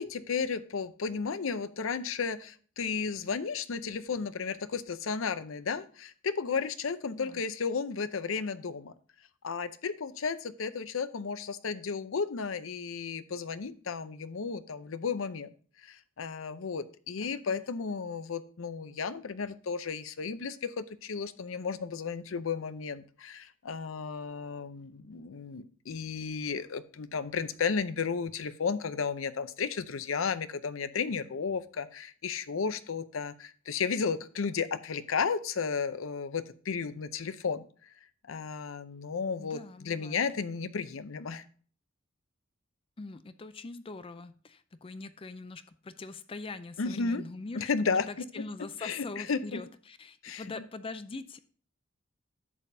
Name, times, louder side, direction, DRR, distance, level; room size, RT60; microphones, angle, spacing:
voice 1, 0.0-8.9 9.4-15.5 15.8-37.6 38.3-41.4 46.8-47.2 47.6-48.1 48.8-49.6 50.2-50.6, left 5 dB, 75° left, 14 dB, 0.6 m, -33 dB
voice 2, 17.2-17.6 39.4-40.2 43.0-51.4, left 3 dB, 25° left, 12 dB, 0.4 m, -43 dB
11.0 x 7.3 x 2.7 m, 0.43 s
head